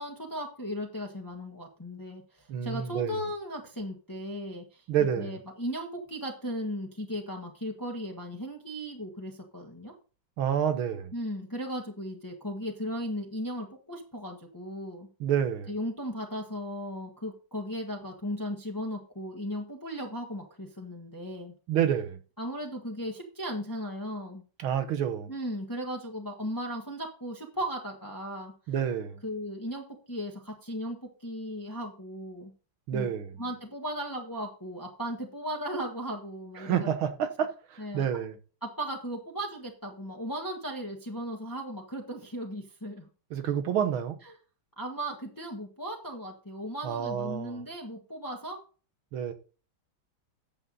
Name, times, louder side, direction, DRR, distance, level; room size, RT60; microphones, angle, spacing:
voice 1, 0.0-4.8 5.2-9.9 11.1-15.1 15.7-21.5 22.4-24.4 25.3-28.5 29.2-32.5 32.9-33.1 33.4-36.9 37.8-38.0 38.6-43.1 44.8-48.6, equal, 10° left, 1.5 m, -36 dB
voice 2, 2.5-3.2 4.9-5.4 10.4-11.1 15.2-15.7 21.7-22.2 24.6-25.3 28.7-29.2 32.9-33.4 36.6-38.4 43.3-44.2 46.8-47.7 49.1-49.3, right 9 dB, 80° right, 2.0 m, -29 dB
9.4 x 7.9 x 4.1 m
omnidirectional pair, 2.2 m